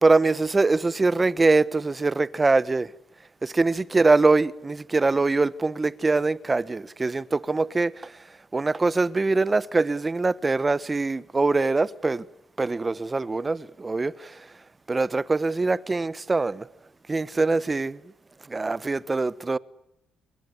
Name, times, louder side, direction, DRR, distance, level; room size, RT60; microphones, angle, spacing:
voice 1, 0.0-2.9 3.4-12.3 12.6-14.5 14.9-16.7 17.1-18.0 18.5-19.6, right 3 dB, 25° right, 1.1 m, -23 dB
25.5 x 23.5 x 9.7 m
cardioid pair, 90°, 0 cm